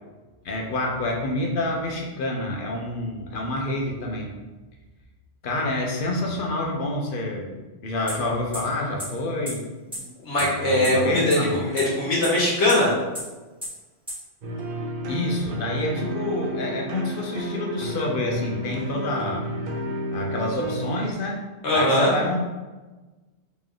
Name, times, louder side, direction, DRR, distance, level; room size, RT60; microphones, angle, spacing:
voice 1, 0.4-4.3 5.4-9.6 10.4-11.6 15.1-19.5 20.1-21.4 21.7-22.4, left 1 dB, 55° left, 0 dB, 0.8 m, -28 dB
sound 1, 8.1-8.2 8.5-8.6 9.0-9.1 9.5-9.6 9.9-10.0 10.4-10.5 10.8-10.9 11.3-11.4 11.8-11.9 12.2-12.3 12.7-12.8 13.1-13.2 13.6-13.7 14.1-14.2, equal, 5° right, 1.4 m, -31 dB
voice 2, 10.2-13.0 21.6-22.1, left 1 dB, 75° left, -5 dB, 1.5 m, -21 dB
sound 2, 14.4-21.0, right 1 dB, 60° right, 0.7 m, -31 dB
3.2 x 3.0 x 3.7 m, 1.2 s
omnidirectional pair, 1.2 m